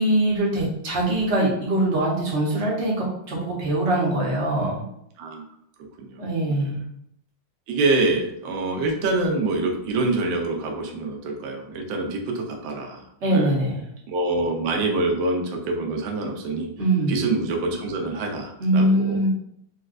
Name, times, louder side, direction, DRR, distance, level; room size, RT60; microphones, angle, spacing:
voice 1, 0.0-4.8 6.2-6.8 13.2-13.9 16.8-17.2 18.6-19.3, right 1 dB, 50° right, -4 dB, 0.9 m, -22 dB
voice 2, 6.0-6.7 7.7-13.5 14.1-16.7 17.1-19.2, right 2 dB, 75° right, 2 dB, 1.3 m, -26 dB
4.2 x 2.3 x 2.4 m, 0.74 s
omnidirectional pair, 2.2 m